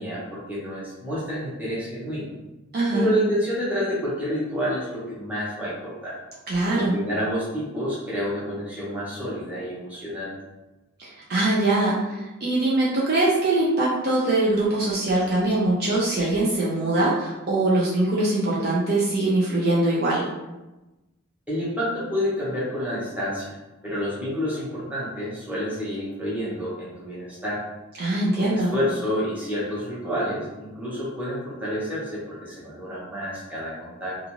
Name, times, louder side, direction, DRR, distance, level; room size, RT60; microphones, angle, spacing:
voice 1, 0.0-2.3 2.9-6.2 6.7-10.3 21.5-23.6 23.8-27.6 28.3-34.2, equal, 5° right, -9 dB, 0.8 m, -29 dB
voice 2, 2.7-3.1 6.5-6.9 11.0-20.3 28.0-28.7, right 2 dB, 45° right, -6 dB, 0.5 m, -22 dB
2.4 x 2.4 x 3.0 m, 1.0 s
head